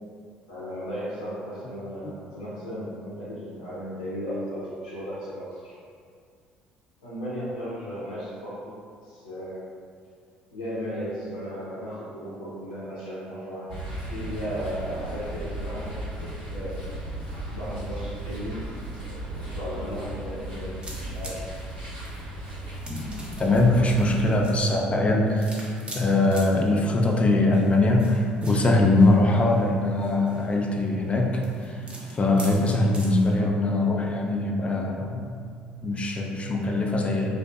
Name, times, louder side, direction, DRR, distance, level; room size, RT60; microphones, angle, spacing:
voice 1, 0.5-5.8 7.0-8.8 9.0-9.6 10.5-13.8 14.1-16.8 17.5-18.7 19.0-21.5, equal, 85° left, -9 dB, 0.5 m, -35 dB
sound 1, 13.7-24.2, right 1 dB, 85° right, 0.8 m, -36 dB
sound 2, 20.8-33.4, equal, 25° right, 0.6 m, -43 dB
voice 2, 23.4-25.6 25.9-35.3 35.8-37.4, left 2 dB, 25° left, 0 dB, 0.4 m, -22 dB
2.5 x 2.3 x 2.3 m, 2.2 s
hypercardioid pair, 55°, 4 cm